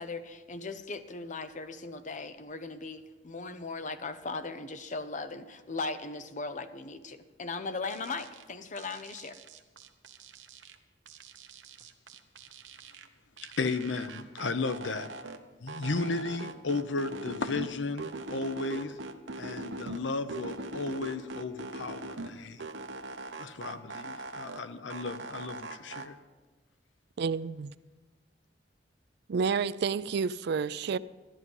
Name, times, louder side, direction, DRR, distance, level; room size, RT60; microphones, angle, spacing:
voice 1, 0.0-9.4, left 3 dB, 45° left, 0.8 m, -38 dB
sound 1, 7.9-8.4 8.8-10.8 11.1-13.1 13.4-15.4 15.7-17.7 18.0-20.0 20.3-22.3 22.6-24.6 24.9-26.1, right 3 dB, 85° right, 0.9 m, -41 dB
voice 2, 13.4-15.1 15.6-19.0 19.4-22.7 23.4-26.2, left 3 dB, 85° left, 0.7 m, -34 dB
voice 3, 27.2-27.7 29.3-31.0, right 5 dB, 60° right, 0.4 m, -30 dB
13.5 x 11.0 x 5.5 m
head